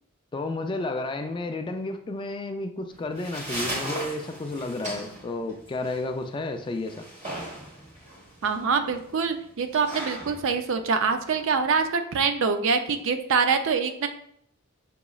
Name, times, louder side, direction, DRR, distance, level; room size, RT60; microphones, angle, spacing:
voice 1, 0.3-7.1, left 2 dB, 25° left, 6 dB, 0.3 m, -32 dB
sound 1, 2.9-11.9, right 1 dB, 35° right, 1.3 m, -38 dB
voice 2, 8.4-14.1, right 5 dB, 65° right, 8 dB, 0.4 m, -25 dB
6.0 x 2.9 x 2.3 m, 0.69 s
head